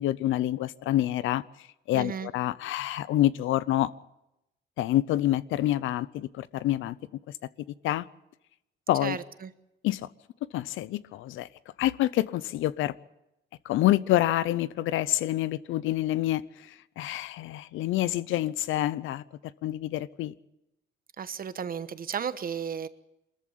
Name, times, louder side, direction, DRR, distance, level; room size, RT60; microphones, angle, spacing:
voice 1, 0.0-1.4 1.9-3.9 4.8-7.0 7.8-8.1 8.9-9.2 9.8-10.1 10.5-11.5 11.8-12.9 13.6-19.2 19.6-20.3, left 14 dB, 90° left, 18 dB, 0.7 m, -27 dB
voice 2, 1.9-2.3 9.0-9.5 21.2-22.9, right 7 dB, 45° right, 13 dB, 1.1 m, -34 dB
23.0 x 14.0 x 8.5 m, 0.89 s
cardioid pair, 90°, 20 cm